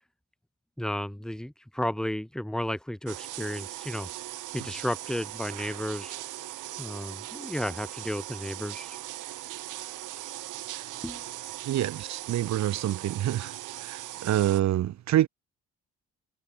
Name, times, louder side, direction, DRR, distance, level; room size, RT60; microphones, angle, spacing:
voice 1, 0.8-4.1 4.5-6.1 6.8-9.0 11.0-11.2, left 1 dB, ahead, 2.5 m, -33 dB
sound 1, 3.1-14.6, right 15 dB, 85° right, 6.9 m, -39 dB
voice 2, 11.6-13.5 13.8-15.3, right 13 dB, 65° right, 0.9 m, -27 dB
cardioid pair, 90°, 30 cm